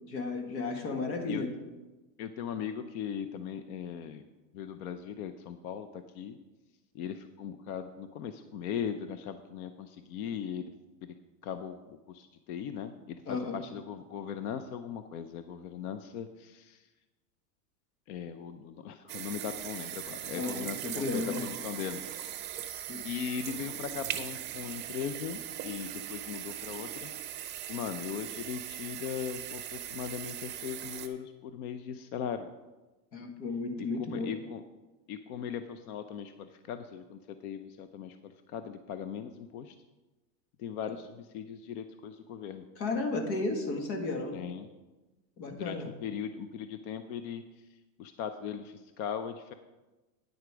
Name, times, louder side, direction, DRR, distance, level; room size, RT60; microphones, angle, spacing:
voice 1, 0.1-1.5 13.3-13.6 20.3-21.4 22.7-23.1 33.1-34.3 42.8-44.4 45.4-45.9, left 3 dB, 85° left, 4 dB, 2.1 m, -34 dB
voice 2, 2.2-4.2 4.5-6.4 6.9-10.6 11.0-11.1 11.4-16.9 18.1-22.4 23.0-27.1 27.7-32.5 33.8-34.6 35.1-39.8 40.6-42.7 44.3-44.7 45.5-47.4 47.7-49.5, left 8 dB, 60° left, 10 dB, 0.7 m, -39 dB
sound 1, 19.1-31.1, right 11 dB, 20° right, 0.6 m, -40 dB
9.6 x 7.9 x 5.0 m, 1.1 s
supercardioid pair, 150°, 50 cm